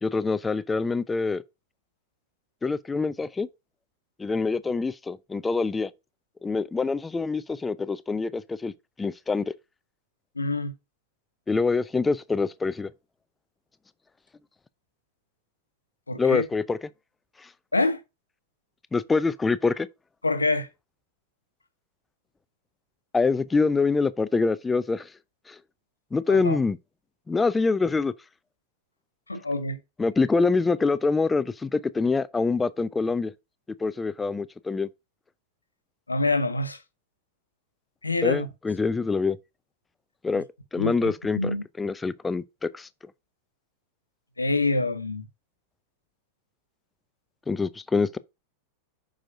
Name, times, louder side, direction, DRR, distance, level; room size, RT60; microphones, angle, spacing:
voice 1, 0.0-1.4 2.6-3.5 4.2-5.9 6.4-8.7 9.0-9.4 11.5-12.9 16.2-16.8 18.9-19.9 23.1-25.1 25.5-25.6 26.1-26.8 27.3-28.1 30.0-33.3 33.8-34.9 38.2-39.4 40.2-40.4 40.7-42.9 47.5-48.2, left 4 dB, 10° left, 0.5 m, -25 dB
voice 2, 10.4-10.7 16.1-16.4 17.7-18.0 20.2-20.7 26.3-26.6 29.3-29.8 36.1-36.8 38.0-38.5 40.8-41.6 44.4-45.2, left 2 dB, 80° left, 1.2 m, -26 dB
8.8 x 6.4 x 2.6 m
figure-of-eight pair, 90°, 0 cm